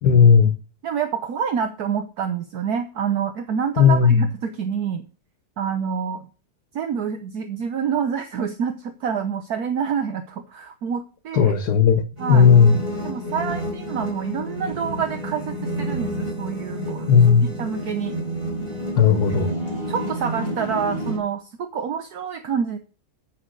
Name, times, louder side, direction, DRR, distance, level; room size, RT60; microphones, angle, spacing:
voice 1, 0.0-0.5 3.8-4.2 11.3-12.0 12.3-12.8 17.1-17.5 19.0-19.5, left 6 dB, 70° left, 1.6 m, -14 dB
voice 2, 0.8-5.0 5.6-6.2 6.7-11.5 12.2-12.5 13.0-17.1 17.6-18.2 19.9-22.8, right 7 dB, 65° right, 1.4 m, -27 dB
sound 1, 12.2-21.2, right 1 dB, 35° right, 4.8 m, -29 dB
9.7 x 7.3 x 6.5 m
omnidirectional pair, 1.8 m